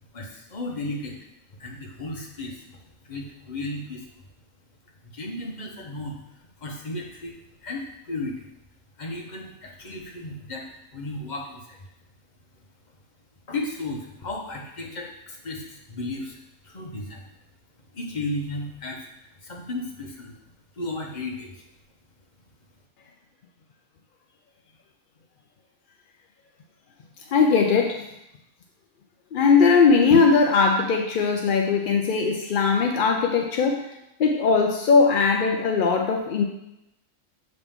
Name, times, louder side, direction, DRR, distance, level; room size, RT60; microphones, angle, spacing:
voice 1, 0.1-1.2 1.6-4.1 5.0-8.5 9.0-10.6 10.9-11.8 13.5-16.4 16.6-17.3 17.9-20.3 20.7-21.6, left 2 dB, 35° left, 0 dB, 1.0 m, -34 dB
voice 2, 27.3-28.0 29.3-33.9 34.2-36.4, left 5 dB, 60° left, 2 dB, 0.5 m, -19 dB
7.1 x 3.9 x 3.6 m, 0.86 s
omnidirectional pair, 1.4 m